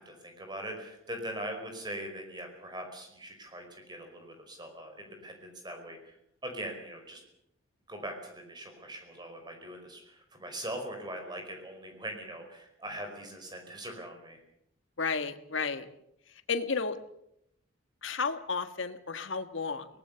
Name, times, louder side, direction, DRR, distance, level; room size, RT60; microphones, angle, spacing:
voice 1, 0.0-6.2 6.4-7.2 7.9-14.4, right 1 dB, 20° right, 4 dB, 5.1 m, -41 dB
voice 2, 15.0-15.9 16.5-17.0 18.0-19.9, left 4 dB, 65° left, 9 dB, 1.6 m, -32 dB
24.0 x 19.5 x 7.0 m, 0.78 s
head